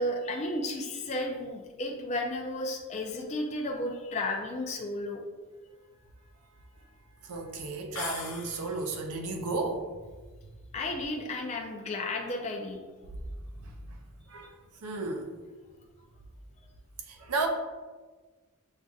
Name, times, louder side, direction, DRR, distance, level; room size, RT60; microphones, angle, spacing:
voice 1, 0.0-5.2 10.7-12.8, left 1 dB, 30° left, 1 dB, 0.4 m, -33 dB
voice 2, 7.2-9.9 13.6-14.0 14.3-14.5 14.8-15.3 17.1-17.5, right 3 dB, 90° right, 3 dB, 0.6 m, -33 dB
sound 1, 7.9-9.0, left 5 dB, 65° left, 0.7 m, -40 dB
6.3 x 2.6 x 2.3 m, 1.4 s
head